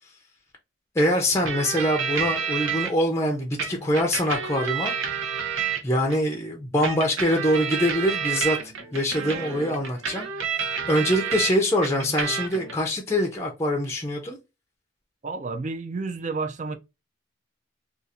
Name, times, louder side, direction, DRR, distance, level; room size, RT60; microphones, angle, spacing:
voice 1, 1.0-4.9 5.8-10.3 10.9-14.4, equal, 15° left, 0.5 m, -24 dB
sound 1, 1.5-2.9 3.6-6.2 6.8-11.5 11.8-12.7, right 6 dB, 80° right, 0.7 m, -29 dB
voice 2, 15.2-16.8, right 3 dB, 35° right, 0.4 m, -30 dB
2.5 x 2.4 x 4.1 m
head